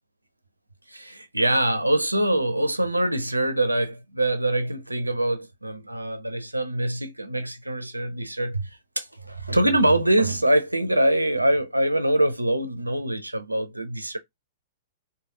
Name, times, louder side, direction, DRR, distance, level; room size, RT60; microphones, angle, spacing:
voice 1, 0.9-14.2, right 1 dB, 90° right, 0.5 m, -24 dB
3.3 x 2.2 x 2.7 m
figure-of-eight pair, 105°, 0 cm